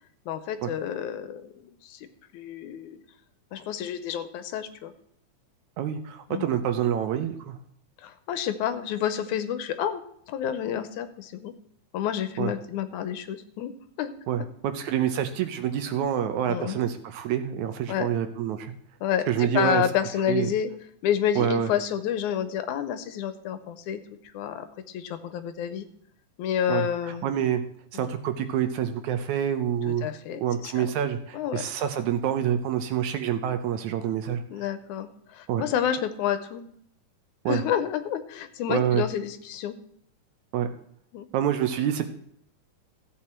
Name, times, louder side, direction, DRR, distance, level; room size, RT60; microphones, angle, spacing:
voice 1, 0.3-2.1 2.3-3.0 3.5-4.9 6.3-6.5 8.0-10.0 10.3-11.5 11.9-13.7 14.0-14.1 16.5-16.8 17.9-18.1 19.0-20.7 21.0-24.0 24.3-24.7 24.9-25.9 26.4-27.3 27.9-28.2 30.0-30.9 31.3-31.6 34.5-36.6 37.5-39.8 41.1-41.3, left 9 dB, 75° left, 11 dB, 2.0 m, -29 dB
voice 2, 5.8-7.6 12.4-12.5 14.3-18.7 19.3-19.8 20.3-20.5 21.4-21.7 26.7-27.6 27.9-30.1 30.4-34.4 35.5-35.6 37.5-37.6 38.7-39.0 40.5-40.7 41.3-42.1, right 9 dB, 75° right, 9 dB, 2.1 m, -27 dB
15.0 x 8.4 x 4.4 m, 0.67 s
omnidirectional pair, 3.7 m